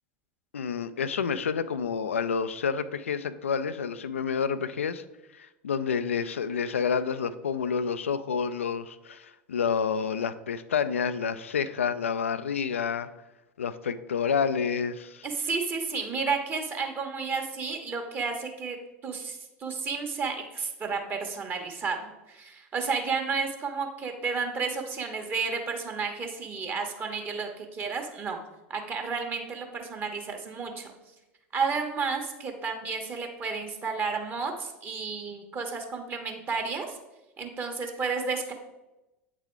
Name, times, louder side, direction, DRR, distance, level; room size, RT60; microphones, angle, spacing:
voice 1, 0.5-5.0 5.3-13.1 13.6-15.2, left 6 dB, 80° left, 14 dB, 0.4 m, -29 dB
voice 2, 15.2-18.8 19.0-28.4 28.7-30.9 31.5-37.0 37.4-38.5, right 5 dB, 30° right, 4 dB, 1.3 m, -32 dB
8.5 x 4.1 x 4.5 m, 0.98 s
figure-of-eight pair, 80°, 7 cm